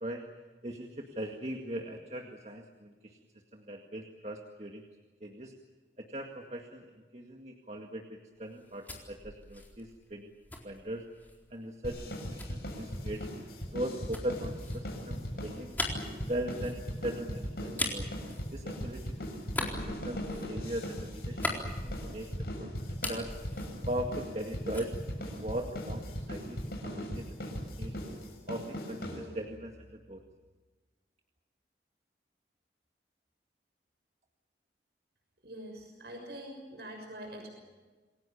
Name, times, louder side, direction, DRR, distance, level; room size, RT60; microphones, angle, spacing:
voice 1, 0.6-3.2 3.5-4.9 5.2-5.5 6.0-10.3 10.6-11.0 11.5-13.3 13.7-15.7 16.3-18.1 18.5-22.3 22.6-22.7 23.0-23.3 23.9-27.9 28.5-30.2, right 1 dB, 40° right, 3 dB, 2.0 m, -39 dB
sound 1, 8.5-11.5 12.4-19.0 19.4-22.5 22.8-24.5 24.7-26.0, left 2 dB, 10° left, 4.1 m, -40 dB
sound 2, 11.8-29.6, equal, 60° left, 7.2 m, -39 dB
voice 2, 35.4-37.5, right 1 dB, 70° right, 2 dB, 6.5 m, -44 dB
28.5 x 21.5 x 7.2 m, 1.3 s
head